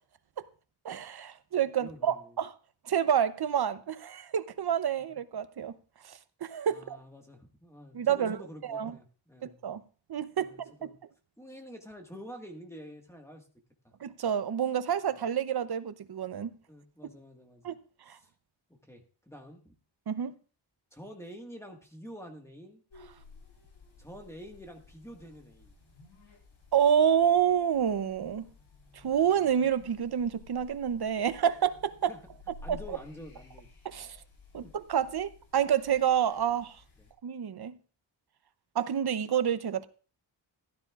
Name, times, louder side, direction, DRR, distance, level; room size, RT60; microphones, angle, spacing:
voice 1, 0.8-2.5 2.8-5.8 6.0-7.0 7.9-8.4 8.7-8.9 9.4-9.8 10.1-10.5 14.0-16.6 17.6-17.8 18.1-18.2 20.1-20.3 26.7-28.5 28.9-32.1 32.7-32.8 33.8-34.2 34.5-36.8 37.2-37.8 38.7-39.9, right 8 dB, 55° right, 0.8 m, -28 dB
voice 2, 1.8-2.4 6.7-9.6 10.4-11.0 11.4-13.5 16.7-17.6 18.1-18.3 18.8-19.7 20.9-22.8 24.0-25.7 32.1-32.2 32.6-33.7 34.6-34.7 37.0-37.1, equal, 5° left, 1.7 m, -48 dB
sound 1, 22.9-37.1, left 3 dB, 80° left, 4.0 m, -54 dB
16.0 x 12.5 x 2.5 m
wide cardioid pair, 155°, 46 cm